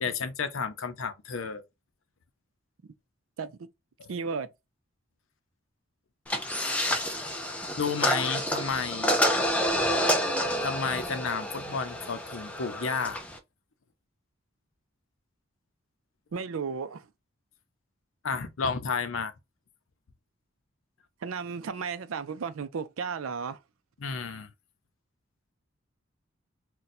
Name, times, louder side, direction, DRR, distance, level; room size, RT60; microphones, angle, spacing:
voice 1, 0.0-1.6 4.0-4.1 7.8-9.1 10.6-13.2 18.2-19.3 24.0-24.5, left 5 dB, 75° left, 0.6 m, -31 dB
voice 2, 4.1-4.5 16.3-17.1 21.2-23.6, right 5 dB, 80° right, 0.5 m, -34 dB
sound 1, 6.3-13.4, equal, 5° left, 0.4 m, -29 dB
2.6 x 2.2 x 4.0 m
head